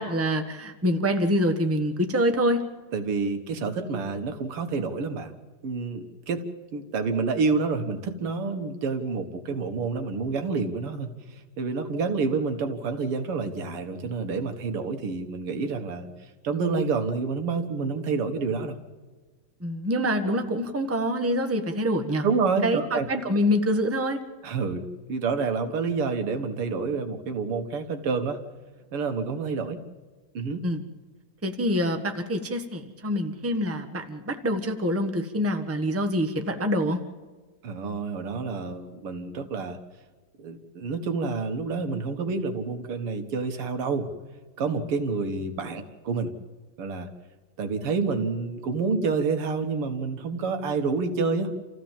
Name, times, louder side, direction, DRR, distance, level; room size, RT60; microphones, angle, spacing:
voice 1, 0.0-2.6 19.6-22.2 22.6-24.2 30.6-30.8 31.4-37.0, equal, 10° right, 6 dB, 1.2 m, -26 dB
voice 2, 2.9-5.3 5.6-6.4 6.7-16.1 16.4-18.8 22.2-23.1 24.4-28.4 28.9-29.8 30.3-30.6 37.6-39.8 40.4-44.1 44.6-46.3 46.8-47.1 47.6-51.5, right 4 dB, 90° right, 7 dB, 2.6 m, -28 dB
28.0 x 15.0 x 7.4 m, 1.4 s
omnidirectional pair, 2.4 m